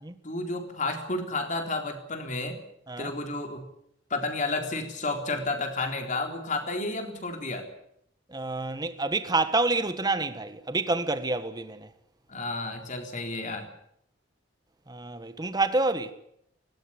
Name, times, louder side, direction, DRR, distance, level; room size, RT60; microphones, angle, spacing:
voice 1, 0.2-2.6 3.0-3.7 4.1-7.7 12.3-13.7, left 2 dB, 45° left, 3.9 m, -31 dB
voice 2, 8.3-11.9 14.9-16.1, right 3 dB, 20° right, 1.6 m, -28 dB
18.5 x 18.0 x 9.8 m
head